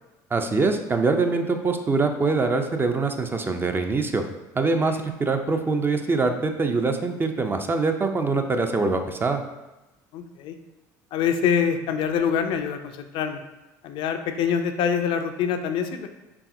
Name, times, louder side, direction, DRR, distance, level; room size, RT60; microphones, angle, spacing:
voice 1, 0.3-4.2 4.5-9.4, right 3 dB, 20° right, 6 dB, 0.4 m, -24 dB
voice 2, 10.1-10.6 11.1-13.4 13.8-16.1, left 7 dB, 60° left, 7 dB, 0.4 m, -25 dB
4.6 x 3.3 x 2.6 m, 1.1 s
hypercardioid pair, 75°, 10 cm